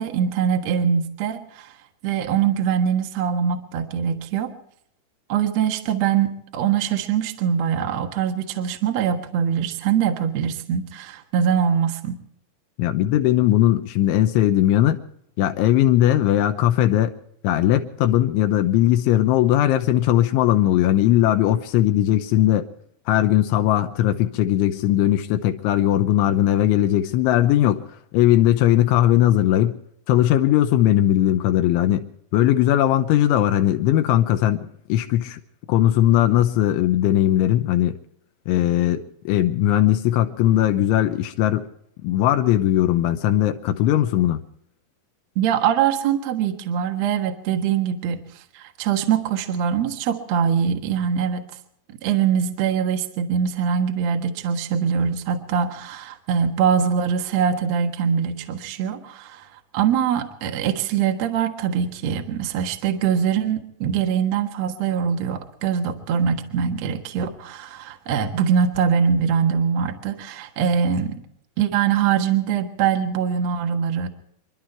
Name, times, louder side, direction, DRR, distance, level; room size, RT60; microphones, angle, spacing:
voice 1, 0.0-1.7 2.0-4.5 5.3-12.2 45.3-48.2 48.5-51.5 52.0-59.4 59.7-71.2 71.6-74.1, right 7 dB, 75° right, 5 dB, 1.5 m, -23 dB
voice 2, 12.8-15.0 15.4-17.2 17.4-22.7 23.1-27.9 28.1-29.8 30.1-32.0 32.3-35.4 35.7-38.0 38.5-41.7 42.0-44.4, left 12 dB, 80° left, 7 dB, 3.2 m, -19 dB
28.5 x 11.5 x 4.5 m, 0.72 s
omnidirectional pair, 5.6 m